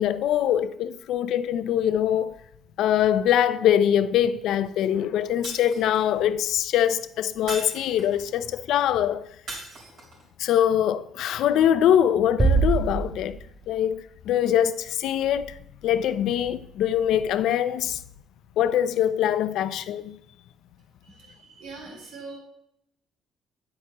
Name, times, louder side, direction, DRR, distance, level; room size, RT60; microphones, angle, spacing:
voice 1, 0.0-2.3 2.8-9.3 10.4-13.4 13.7-15.6 15.8-18.0 18.6-20.2, left 10 dB, 75° left, 0.5 m, -23 dB
Shatter, 5.4-6.2 7.5-8.3 9.5-10.3, right 2 dB, 55° right, 3.9 m, -38 dB
sound 1, 12.4-13.8, right 4 dB, 15° right, 0.6 m, -23 dB
voice 2, 21.0-22.4, right 3 dB, 80° right, 3.8 m, -42 dB
9.7 x 8.5 x 2.9 m
cardioid pair, 140°, 0 cm